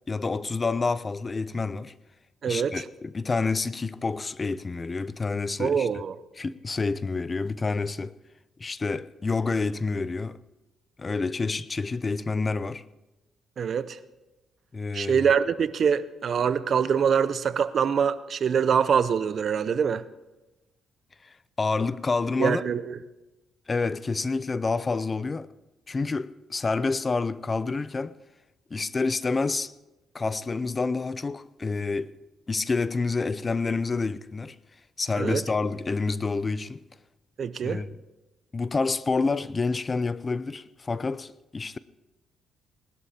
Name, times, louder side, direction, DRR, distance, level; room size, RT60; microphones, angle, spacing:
voice 1, 0.1-1.9 2.5-5.9 6.4-8.2 8.6-10.4 11.0-12.8 14.7-15.3 21.2-22.6 23.7-25.5 25.9-28.2 28.7-29.7 30.1-32.2 32.5-34.6 35.0-36.8 37.6-37.9 38.5-41.8, left 4 dB, 30° left, 0.5 m, -28 dB
voice 2, 2.4-2.7 5.6-6.1 13.6-14.0 14.9-20.0 22.4-23.0 35.2-35.4 37.4-37.8, right 7 dB, 55° right, 0.7 m, -24 dB
19.5 x 12.0 x 4.3 m
cardioid pair, 90°, 0 cm